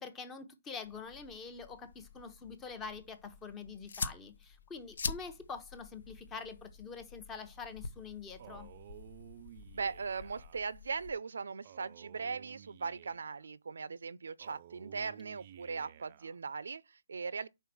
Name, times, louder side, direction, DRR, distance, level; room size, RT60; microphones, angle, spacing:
voice 1, 0.0-8.7, left 5 dB, 10° left, 0.7 m, -45 dB
sound 1, 0.8-11.1, left 4 dB, 65° left, 0.8 m, -46 dB
Male speech man speaking, 8.4-10.6 11.6-13.5 14.4-16.4, right 11 dB, 35° right, 0.4 m, -54 dB
voice 2, 9.7-17.5, right 5 dB, 90° right, 0.5 m, -39 dB
5.5 x 4.2 x 6.0 m
hypercardioid pair, 170°, 0 cm